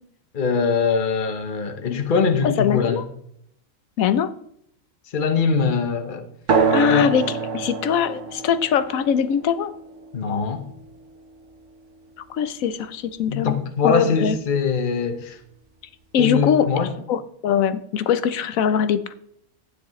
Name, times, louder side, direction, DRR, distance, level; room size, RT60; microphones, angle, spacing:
voice 1, 0.3-3.0 5.1-6.3 6.9-7.1 10.1-10.6 13.3-15.4 16.2-16.9, left 5 dB, 40° left, 1.1 m, -22 dB
voice 2, 2.4-3.0 4.0-4.3 6.7-7.2 7.5-9.7 12.3-14.4 16.1-16.7 17.1-19.1, left 8 dB, 80° left, 1.1 m, -22 dB
sound 1, 6.5-11.5, right 5 dB, 60° right, 1.5 m, -26 dB
12.5 x 9.6 x 3.1 m
omnidirectional pair, 1.4 m